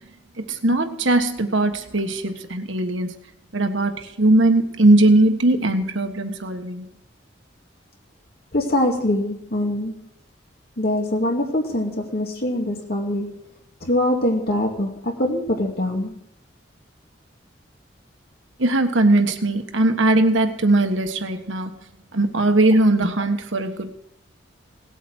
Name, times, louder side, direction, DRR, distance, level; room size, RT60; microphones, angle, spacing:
voice 1, 0.4-3.2 3.5-6.8 18.6-21.7 22.1-23.9, right 2 dB, 90° right, 6 dB, 1.5 m, -19 dB
voice 2, 8.5-10.1 10.8-13.4 13.8-16.2, left 1 dB, 55° left, 2 dB, 2.4 m, -23 dB
18.0 x 8.1 x 6.3 m, 0.76 s
head